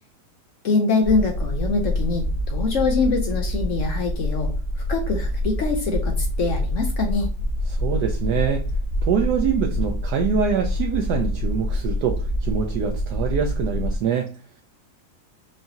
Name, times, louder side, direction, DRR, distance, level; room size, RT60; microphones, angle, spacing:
voice 1, 0.6-4.5 4.9-7.3, left 4 dB, 70° left, 0.7 m, -24 dB
sound 1, 1.0-14.0, left 1 dB, 50° left, 1.1 m, -26 dB
voice 2, 7.8-8.6 9.0-14.3, right 7 dB, 75° right, 1.0 m, -24 dB
4.7 x 2.6 x 2.8 m
omnidirectional pair, 2.0 m